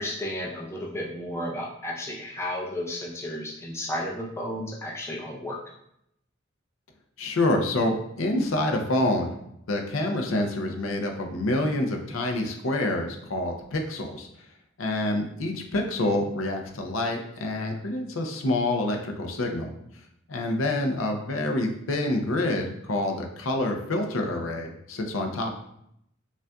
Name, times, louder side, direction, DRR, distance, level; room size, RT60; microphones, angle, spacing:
voice 1, 0.0-5.6, left 1 dB, 15° left, -3 dB, 0.5 m, -33 dB
voice 2, 7.2-9.3 9.7-14.3 14.8-19.7 20.3-25.6, left 1 dB, 90° left, 3 dB, 0.6 m, -27 dB
5.1 x 2.5 x 2.3 m, 0.75 s
head